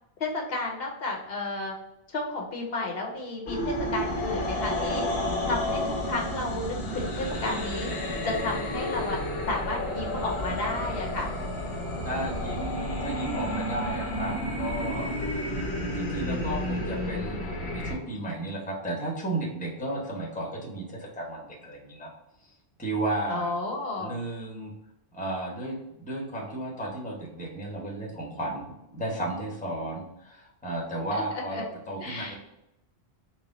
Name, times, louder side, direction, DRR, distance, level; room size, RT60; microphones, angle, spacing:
voice 1, 0.2-1.7 2.1-5.0 5.5-7.9 8.2-9.2 9.5-11.3 23.3-24.2 31.1-31.6 32.0-32.4, left 2 dB, 70° left, 0 dB, 1.0 m, -32 dB
sound 1, 3.5-17.9, left 1 dB, 90° left, 1.1 m, -31 dB
voice 2, 12.0-15.1 15.9-17.4 17.7-22.1 22.8-23.5 24.0-24.7 25.1-28.6 28.9-32.4, right 1 dB, 10° left, -2 dB, 0.9 m, -33 dB
4.2 x 2.2 x 4.0 m, 0.86 s
omnidirectional pair, 1.1 m